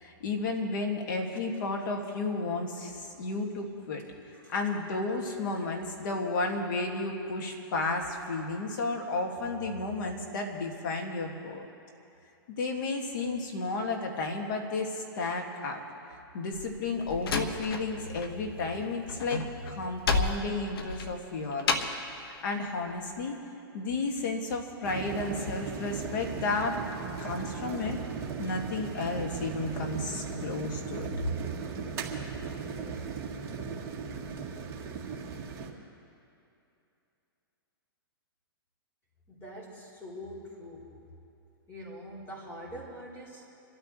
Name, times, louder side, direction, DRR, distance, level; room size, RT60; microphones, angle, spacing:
voice 1, 0.0-4.0 4.5-11.7 12.6-15.8 16.3-21.9 22.2-23.4 23.7-26.8 27.2-28.0 28.4-31.1, left 3 dB, 55° left, 2 dB, 2.4 m, -32 dB
Slam, 16.5-18.3 18.6-22.1, left 4 dB, 75° left, 1.3 m, -31 dB
sound 1, 24.8-35.7, right 5 dB, 20° right, 1.8 m, -37 dB
voice 2, 39.3-41.0 41.7-43.5, equal, 20° left, -5 dB, 4.0 m, -44 dB
27.5 x 13.0 x 3.4 m, 2.7 s
hypercardioid pair, 150°, 13 cm